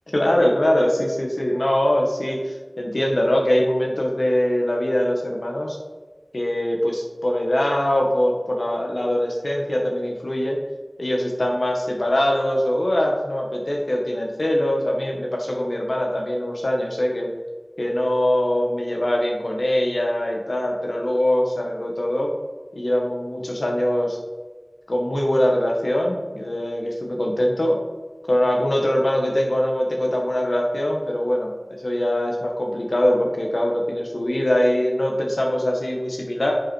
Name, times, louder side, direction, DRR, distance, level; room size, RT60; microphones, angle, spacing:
voice 1, 0.1-5.8 6.3-10.6 11.0-17.3 17.8-22.3 22.8-24.2 24.9-27.8 28.3-31.5 31.8-36.5, left 1 dB, 85° left, -1 dB, 1.7 m, -22 dB
10.0 x 6.3 x 4.6 m, 1.3 s
wide cardioid pair, 40°, 0 cm